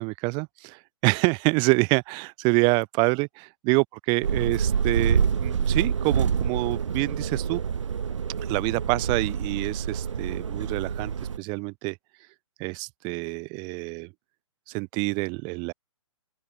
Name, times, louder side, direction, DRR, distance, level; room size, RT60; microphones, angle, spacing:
voice 1, 0.0-7.6 8.5-11.1 11.4-12.0 12.6-14.1 14.7-15.7, right 31 dB, 30° right, 2.8 m, -26 dB
sound 1, 4.2-11.4, right 7 dB, 70° right, 6.2 m, -27 dB
open air
hypercardioid pair, 140°, 16 cm